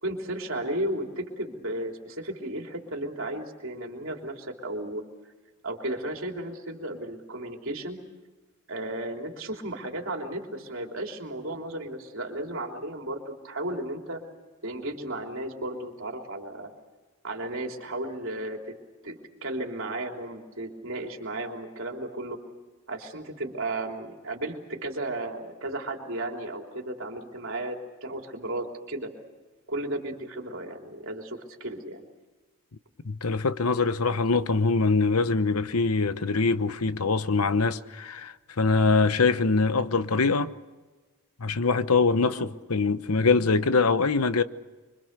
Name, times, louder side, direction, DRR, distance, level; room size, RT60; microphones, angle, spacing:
voice 1, 0.0-5.0 5.6-8.0 8.7-14.2 14.6-16.7 17.2-18.7 19.0-22.4 22.9-29.1 29.7-32.1 42.3-42.5, right 1 dB, 60° right, 3.5 m, -34 dB
voice 2, 33.0-40.5 41.4-44.4, left 4 dB, 90° left, 1.0 m, -23 dB
25.5 x 25.0 x 6.8 m
head